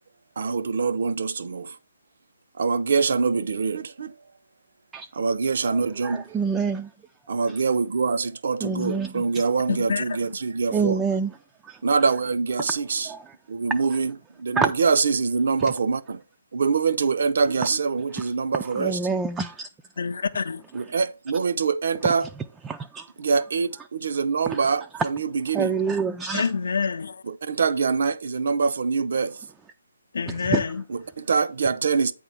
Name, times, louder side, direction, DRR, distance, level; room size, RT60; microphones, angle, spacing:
voice 1, 0.4-1.8 2.6-4.1 5.1-6.2 7.3-11.0 11.8-13.1 13.5-16.2 16.5-19.0 20.7-22.3 23.2-25.8 27.3-29.4 30.9-32.1, right 5 dB, 55° right, 0.6 m, -24 dB
voice 2, 5.7-6.9 8.6-9.2 10.7-11.3 11.6-11.8 13.1-13.2 14.6-14.7 18.8-19.7 22.6-23.1 24.5-24.6 25.5-26.5 30.5-30.6, right 5 dB, 10° right, 0.3 m, -26 dB
voice 3, 9.7-10.0 20.0-20.6 26.3-27.2 30.1-30.8, left 5 dB, 60° left, 0.6 m, -26 dB
8.8 x 3.6 x 5.7 m
figure-of-eight pair, 140°, 0 cm